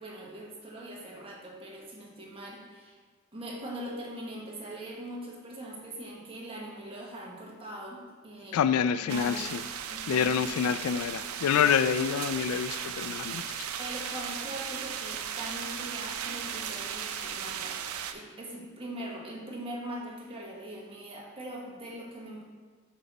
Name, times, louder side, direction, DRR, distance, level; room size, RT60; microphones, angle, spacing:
voice 1, 0.0-3.0 3.3-9.4 9.9-10.4 11.5-11.6 13.8-17.8 18.1-22.4, right 1 dB, 25° right, -3 dB, 1.5 m, -41 dB
voice 2, 8.5-9.6 10.1-13.7, left 7 dB, 80° left, 16 dB, 0.3 m, -27 dB
sound 1, 9.1-18.1, right 8 dB, 90° right, 0.5 m, -36 dB
6.6 x 5.4 x 4.1 m, 1.5 s
head